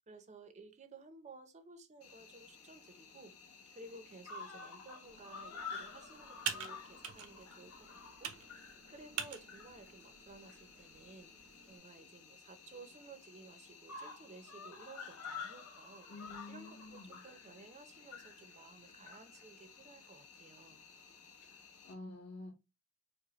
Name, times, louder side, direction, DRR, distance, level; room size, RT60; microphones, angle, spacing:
voice 1, 0.1-3.3 3.7-8.6 8.9-16.1 16.5-20.8, right 3 dB, 30° right, 0.6 m, -56 dB
Cricket, 2.0-21.9, left 5 dB, 70° left, 1.0 m, -51 dB
Computer keyboard, 5.0-11.8, right 8 dB, 70° right, 0.7 m, -46 dB
voice 2, 16.1-17.2 21.4-22.5, left 2 dB, 50° left, 1.1 m, -50 dB
4.8 x 2.1 x 3.0 m
head